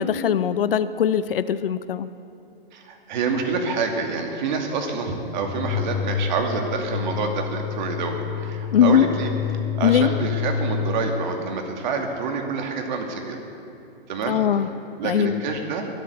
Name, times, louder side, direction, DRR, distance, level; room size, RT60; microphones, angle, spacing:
voice 1, 0.0-2.1 8.7-9.1 9.8-10.1 14.3-14.7 15.0-15.4, left 9 dB, 65° left, 14 dB, 0.7 m, -20 dB
voice 2, 2.7-9.3 9.7-13.4 14.1-14.4 15.0-15.9, right 4 dB, 50° right, 3 dB, 2.6 m, -27 dB
sound 1, 5.5-11.1, left 8 dB, 10° left, 1.1 m, -28 dB
23.0 x 8.4 x 7.0 m, 2.8 s
hypercardioid pair, 130°, 30 cm